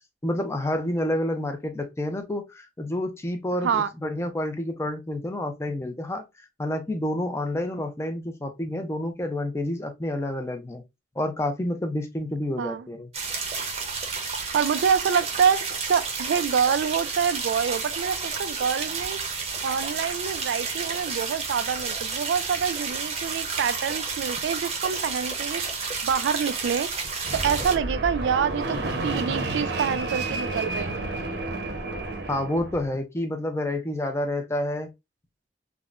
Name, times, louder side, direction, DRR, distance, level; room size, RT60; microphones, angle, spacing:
voice 1, 0.2-10.8 11.2-13.1 32.3-34.9, left 1 dB, 15° left, 0.5 m, -29 dB
sound 1, 13.1-27.7, right 5 dB, 35° right, 0.7 m, -31 dB
voice 2, 14.5-19.2 19.6-25.6 26.0-26.9 27.3-31.1, right 7 dB, 85° right, 0.3 m, -26 dB
Fixed-wing aircraft airplane, 27.2-32.9, right 2 dB, 65° right, 0.7 m, -30 dB
3.6 x 2.1 x 2.3 m
head